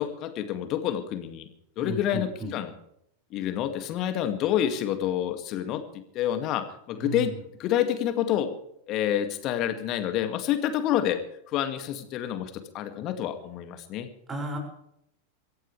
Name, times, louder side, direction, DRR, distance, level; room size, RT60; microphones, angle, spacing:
voice 1, 0.0-1.5 1.8-2.7 3.3-7.3 7.6-8.5 8.9-11.2 11.5-14.1, left 11 dB, 35° left, 8 dB, 2.2 m, -28 dB
voice 2, 1.8-2.6 6.9-7.4 14.3-14.6, right 2 dB, 20° right, 3 dB, 6.1 m, -34 dB
24.0 x 15.5 x 3.4 m, 0.74 s
figure-of-eight pair, 90°, 0 cm